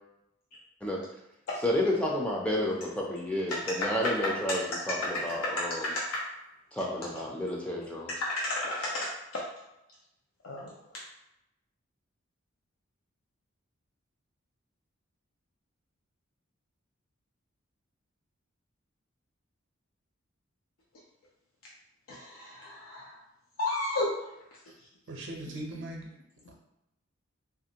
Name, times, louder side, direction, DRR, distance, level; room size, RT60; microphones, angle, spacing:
voice 1, 1.6-4.6 4.9-5.9 6.7-8.1, left 1 dB, 5° left, -3 dB, 0.4 m, -30 dB
voice 2, 5.8-6.2 8.2-9.4 10.4-10.7 22.1-23.2 23.6-24.3 25.5-25.6, left 2 dB, 85° left, -4 dB, 0.5 m, -33 dB
voice 3, 25.1-26.1, right 1 dB, 60° right, 0 dB, 0.6 m, -39 dB
2.8 x 2.5 x 2.8 m, 0.87 s
head